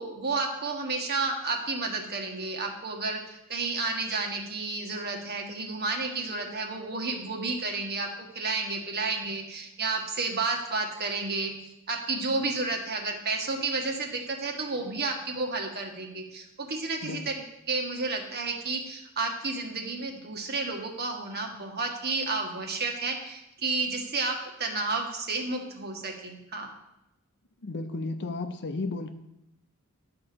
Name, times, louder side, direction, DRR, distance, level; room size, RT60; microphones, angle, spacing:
voice 1, 0.0-11.5 11.9-17.3 17.7-26.7, right 3 dB, 45° right, 2 dB, 1.6 m, -31 dB
voice 2, 27.6-29.1, left 3 dB, 50° left, 8 dB, 0.8 m, -33 dB
11.0 x 4.9 x 6.9 m, 0.87 s
head